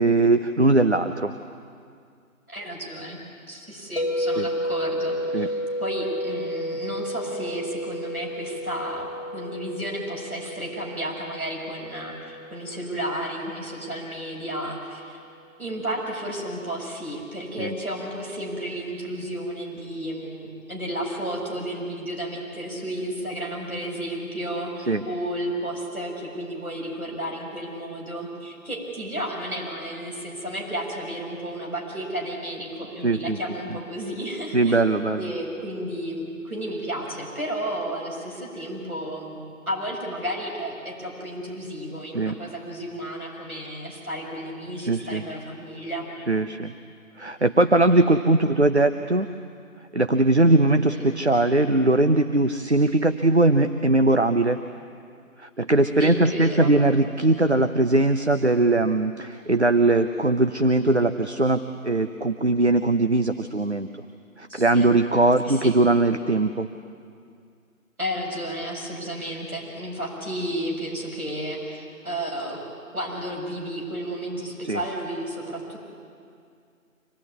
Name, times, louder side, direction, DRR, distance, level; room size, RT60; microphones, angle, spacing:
voice 1, 0.0-1.3 4.4-4.5 5.3-5.5 17.6-17.7 24.9-25.0 33.0-33.4 34.5-35.3 42.0-42.3 44.8-45.2 46.3-46.7 47.2-49.3 49.9-54.6 55.4-63.9 64.4-66.7 74.7-74.8, right 2 dB, 50° right, 8 dB, 0.8 m, -20 dB
voice 2, 2.5-3.2 3.5-15.2 15.6-34.8 35.1-39.4 39.7-46.1 48.4-48.6 50.9-51.0 56.0-56.7 64.5-64.9 65.4-65.8 68.0-72.6 72.9-75.8, right 1 dB, 85° right, -2 dB, 7.2 m, -32 dB
sound 1, 4.0-14.0, equal, 45° left, 1.9 m, -32 dB
26.0 x 17.0 x 9.6 m, 2.3 s
figure-of-eight pair, 175°, 43 cm